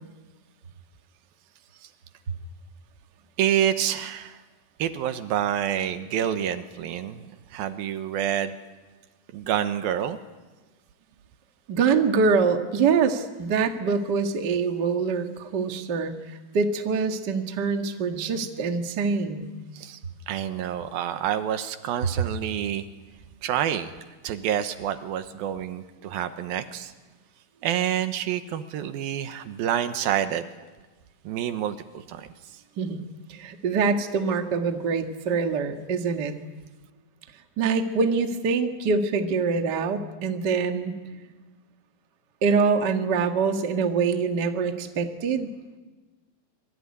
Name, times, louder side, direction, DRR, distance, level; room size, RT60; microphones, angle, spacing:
voice 1, 3.4-4.4 4.8-8.6 9.3-10.2 19.7-20.0 20.3-22.8 23.4-23.9 24.2-26.9 27.6-30.5 31.2-32.6, right 10 dB, 75° right, 10 dB, 2.8 m, -28 dB
voice 2, 11.7-16.1 16.5-19.5 32.8-33.0 33.3-36.3 37.6-40.9 42.4-45.5, right 5 dB, 40° right, 5 dB, 1.5 m, -24 dB
26.0 x 22.5 x 9.8 m, 1.3 s
omnidirectional pair, 4.4 m